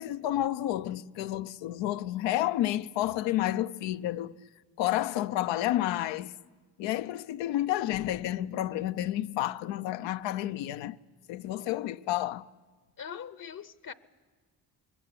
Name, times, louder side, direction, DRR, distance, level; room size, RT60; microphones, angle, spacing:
voice 1, 0.0-4.3 4.8-6.3 6.8-11.0 11.3-12.5, left 13 dB, 85° left, 0.7 m, -30 dB
voice 2, 13.0-13.9, left 7 dB, 50° left, 0.9 m, -41 dB
22.0 x 17.0 x 9.9 m
supercardioid pair, 55°, 43 cm